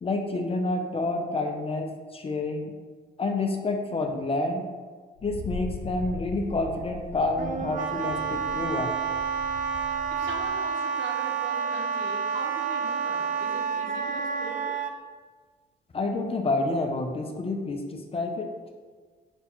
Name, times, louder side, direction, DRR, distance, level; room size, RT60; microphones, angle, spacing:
voice 1, 0.0-2.7 3.2-4.6 5.2-8.9 15.9-18.5, left 2 dB, 30° left, 3 dB, 0.5 m, -28 dB
Wind, 5.2-10.7, left 3 dB, 80° left, 0.6 m, -40 dB
Wind instrument woodwind instrument, 7.4-14.9, right 6 dB, 40° right, 0.4 m, -29 dB
voice 2, 9.8-14.7, right 2 dB, 75° right, 0 dB, 0.9 m, -41 dB
5.1 x 2.3 x 4.3 m, 1.5 s
cardioid pair, 90°, 20 cm